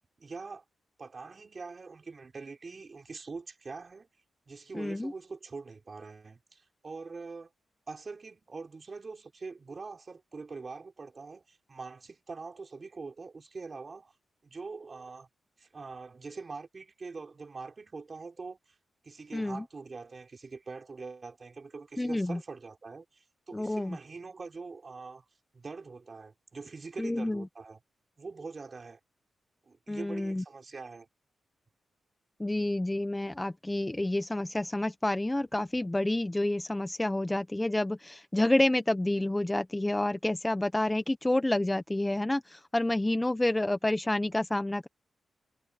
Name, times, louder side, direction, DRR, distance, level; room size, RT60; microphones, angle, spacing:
voice 1, 0.2-0.6 1.0-4.1 4.5-7.5 7.9-14.1 14.4-15.3 15.6-18.8 19.0-25.3 25.5-27.8 28.2-29.0 29.6-31.1, right 4 dB, 35° right, 4.0 m, -44 dB
voice 2, 4.7-5.1 19.3-19.6 22.0-22.4 23.5-24.0 27.0-27.4 29.9-30.4 32.4-44.9, left 1 dB, 10° left, 0.8 m, -29 dB
wide cardioid pair, 115°, 0 cm